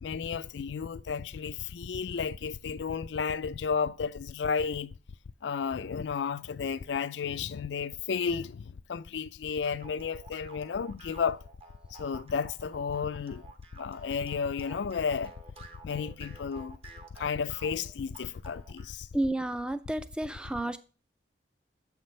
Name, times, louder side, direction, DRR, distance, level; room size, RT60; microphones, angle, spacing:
voice 1, 0.0-4.9 5.4-11.4 11.9-13.4 13.7-15.3 15.8-16.8 17.1-19.1, left 6 dB, 80° left, 0.4 m, -32 dB
sound 1, 9.6-18.9, right 3 dB, 30° right, 0.9 m, -52 dB
voice 2, 19.1-20.8, right 1 dB, 5° right, 0.4 m, -31 dB
7.4 x 6.0 x 3.2 m
head